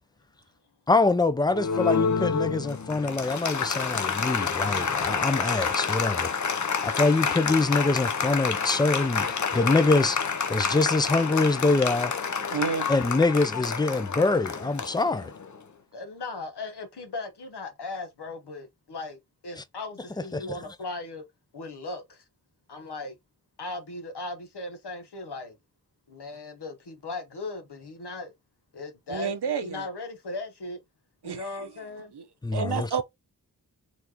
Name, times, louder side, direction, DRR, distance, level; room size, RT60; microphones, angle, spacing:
voice 1, 0.9-6.3 6.8-10.2 10.5-12.1 12.9-15.3 19.6-19.7 20.3-20.6 32.4-32.9, left 3 dB, 10° left, 0.4 m, -24 dB
Applause, 1.5-15.6, left 5 dB, 50° left, 0.6 m, -28 dB
voice 2, 12.5-12.9 29.1-29.9 31.2-31.6 32.1-32.2 32.5-33.0, right 6 dB, 85° right, 0.9 m, -30 dB
voice 3, 15.9-21.2 21.5-22.2 22.7-23.2 23.6-25.6 26.1-28.3 28.7-29.3 29.6-30.8 31.2-32.1, left 2 dB, 90° left, 1.1 m, -37 dB
4.1 x 3.3 x 2.9 m
wide cardioid pair, 60°, 39 cm